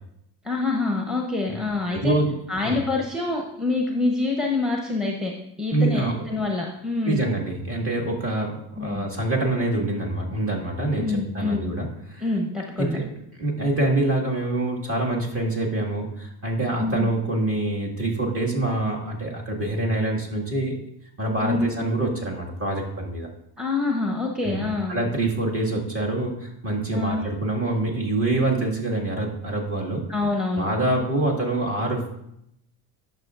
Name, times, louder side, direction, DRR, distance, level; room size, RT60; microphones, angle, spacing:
voice 1, 0.4-2.1 2.5-7.2 8.8-9.1 10.9-11.7 12.2-13.0 16.8-17.1 21.4-21.7 23.6-25.0 26.9-27.2 30.1-30.7, left 3 dB, ahead, 0 dB, 0.9 m, -26 dB
voice 2, 1.9-2.3 2.6-2.8 5.7-6.1 7.0-8.5 8.8-12.2 12.8-13.0 13.4-20.8 21.2-23.3 24.4-24.6 24.9-30.0 30.6-32.1, right 2 dB, 35° right, -2 dB, 2.0 m, -25 dB
11.0 x 6.2 x 2.5 m, 0.78 s
supercardioid pair, 95°, 40 cm